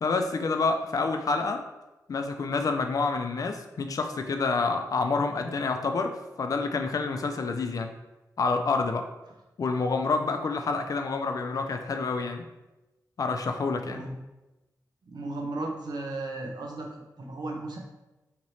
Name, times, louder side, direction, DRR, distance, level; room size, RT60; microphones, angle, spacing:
voice 1, 0.0-1.6 2.1-6.1 6.4-7.9 8.4-9.0 9.6-12.4 13.2-14.0, left 4 dB, 55° left, 5 dB, 0.4 m, -28 dB
voice 2, 13.9-14.2 15.0-17.8, right 2 dB, 85° right, 1 dB, 0.7 m, -35 dB
3.1 x 2.9 x 4.0 m, 1.0 s
wide cardioid pair, 125°, 7 cm